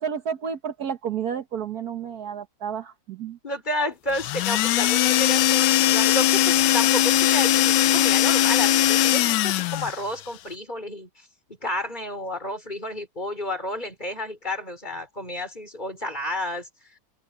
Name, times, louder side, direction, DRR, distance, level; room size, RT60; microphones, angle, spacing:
voice 1, 0.0-3.4, right 7 dB, 60° right, 1.7 m, -31 dB
voice 2, 3.4-11.1 11.6-16.7, left 1 dB, 25° left, 4.7 m, -31 dB
sound 1, 4.1-10.0, left 13 dB, 80° left, 1.3 m, -20 dB
omnidirectional pair, 1.9 m